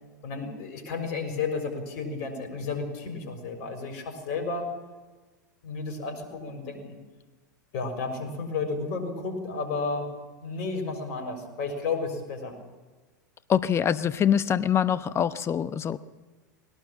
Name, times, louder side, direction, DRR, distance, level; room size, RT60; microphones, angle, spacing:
voice 1, 0.2-4.7 5.6-7.0 7.7-10.1 10.4-12.6, left 4 dB, 50° left, 4 dB, 6.5 m, -32 dB
voice 2, 13.5-16.0, left 8 dB, 25° left, 14 dB, 1.0 m, -24 dB
21.0 x 18.5 x 7.4 m, 1.3 s
hypercardioid pair, 100°, 10 cm